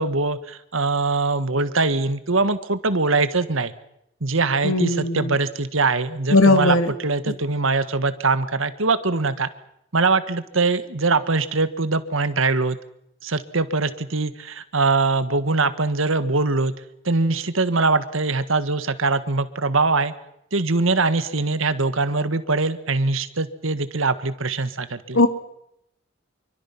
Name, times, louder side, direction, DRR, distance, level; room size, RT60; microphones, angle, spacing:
voice 1, 0.0-3.7 4.2-6.8 7.0-9.5 9.9-12.8 13.2-16.7 17.0-20.1 20.5-25.2, right 3 dB, 75° right, 12 dB, 1.6 m, -22 dB
voice 2, 4.6-5.4 6.3-6.9 7.3-7.4 25.1-25.3, left 2 dB, 75° left, 8 dB, 2.6 m, -18 dB
26.5 x 24.0 x 6.0 m, 0.79 s
head